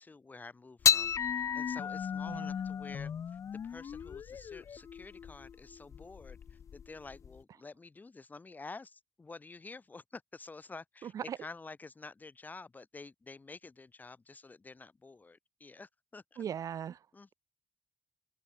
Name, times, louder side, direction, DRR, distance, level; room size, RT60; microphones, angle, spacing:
voice 1, 0.0-16.4 17.1-17.3, left 3 dB, 30° left, 3.0 m, -50 dB
sound 1, 0.8-7.4, left 7 dB, 60° left, 1.1 m, -34 dB
voice 2, 11.0-11.4 16.4-17.0, right 9 dB, 70° right, 1.5 m, -38 dB
open air
cardioid pair, 95°, 6 cm